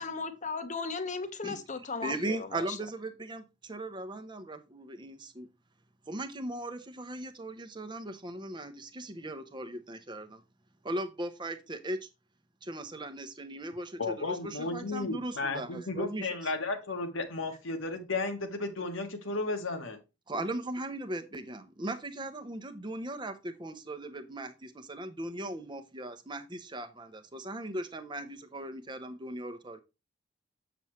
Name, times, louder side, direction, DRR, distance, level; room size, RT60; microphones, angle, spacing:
voice 1, 0.0-2.8, left 4 dB, 40° left, 0.9 m, -36 dB
voice 2, 2.0-5.5 6.1-10.4 10.8-12.1 12.6-16.3 20.3-29.8, right 1 dB, 25° right, 0.8 m, -38 dB
voice 3, 14.0-20.0, left 3 dB, 80° left, 1.4 m, -34 dB
7.2 x 6.9 x 3.1 m
head